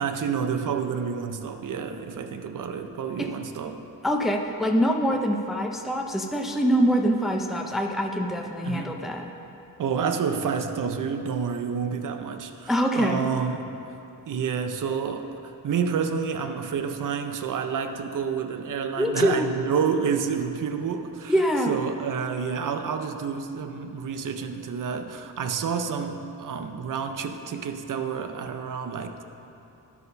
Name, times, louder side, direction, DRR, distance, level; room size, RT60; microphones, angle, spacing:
voice 1, 0.0-3.9 8.6-8.9 9.8-13.8 14.3-15.3 15.6-21.3 21.7-29.2, right 6 dB, 55° right, 7 dB, 0.6 m, -29 dB
voice 2, 4.0-9.3 12.7-13.2 19.0-19.5 21.3-21.7, equal, ahead, 2 dB, 0.5 m, -24 dB
12.0 x 4.1 x 5.4 m, 2.8 s
wide cardioid pair, 115°, 39 cm